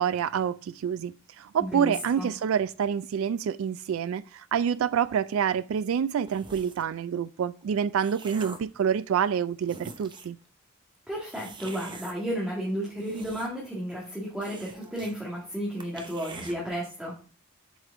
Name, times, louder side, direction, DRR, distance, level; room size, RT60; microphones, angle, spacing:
voice 1, 0.0-10.4, right 8 dB, 80° right, 0.3 m, -27 dB
voice 2, 1.6-2.3 11.1-17.2, equal, 5° right, 1.9 m, -33 dB
sound 1, 6.3-6.9 7.6-8.8 9.3-9.4 9.6-10.4 11.3-12.2 12.8-13.7 14.0-14.1 14.4-15.2 15.5-15.6 15.8-16.6, right 3 dB, 20° right, 0.7 m, -44 dB
8.1 x 4.9 x 3.7 m
head